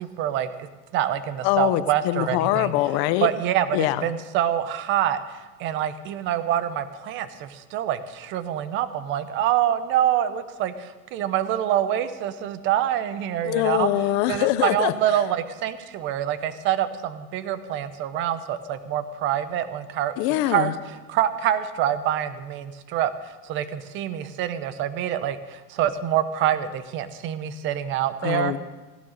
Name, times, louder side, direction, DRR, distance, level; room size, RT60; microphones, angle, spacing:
voice 1, 0.0-2.7 3.2-13.9 14.3-20.2 20.4-20.7 21.1-28.5, right 11 dB, 30° right, 13 dB, 0.8 m, -26 dB
voice 2, 1.4-3.3 3.7-4.0 13.4-14.9 20.2-20.7 28.2-28.6, left 15 dB, 35° left, 14 dB, 0.7 m, -23 dB
16.5 x 11.5 x 6.6 m, 1.2 s
supercardioid pair, 155°, 42 cm